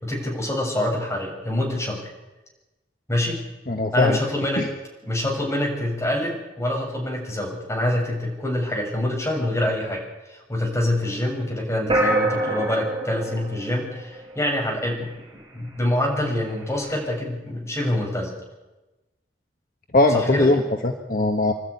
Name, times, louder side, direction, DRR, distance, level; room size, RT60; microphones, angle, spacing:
voice 1, 0.0-2.0 3.1-3.4 3.9-4.7 5.0-10.0 10.3-15.1 15.5-18.3 20.1-20.5, left 1 dB, 15° left, -1 dB, 6.9 m, -25 dB
voice 2, 3.7-4.2 4.6-4.7 19.9-21.5, left 2 dB, 50° left, 3 dB, 1.4 m, -20 dB
sound 1, 11.9-14.5, right 1 dB, 30° right, 5.8 m, -25 dB
27.5 x 12.5 x 9.6 m, 1.1 s
head